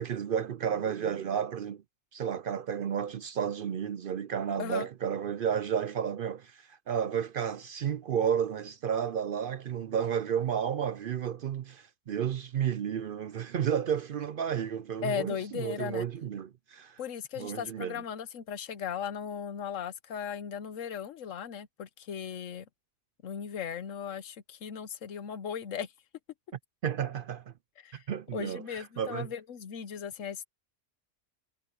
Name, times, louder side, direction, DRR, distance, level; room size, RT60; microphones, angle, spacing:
voice 1, 0.0-1.8 2.1-17.0 17.4-18.0 26.8-27.5 28.1-29.3, right 8 dB, 60° right, 0.6 m, -32 dB
voice 2, 15.0-16.1 17.0-22.7 23.2-25.9 27.8-28.0 28.3-30.4, left 8 dB, 85° left, 1.3 m, -37 dB
omnidirectional pair, 1.3 m